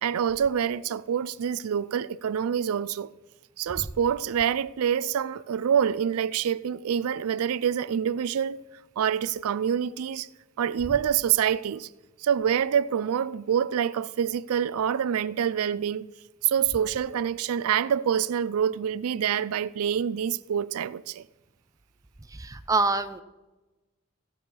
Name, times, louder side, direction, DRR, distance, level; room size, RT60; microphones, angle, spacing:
voice 1, 0.0-3.1 3.6-8.6 9.0-10.3 10.6-11.9 12.2-16.1 16.4-21.2, right 8 dB, 90° right, 0.4 m, -26 dB
voice 2, 22.3-23.2, right 3 dB, 15° right, 0.5 m, -26 dB
16.0 x 6.4 x 5.4 m
head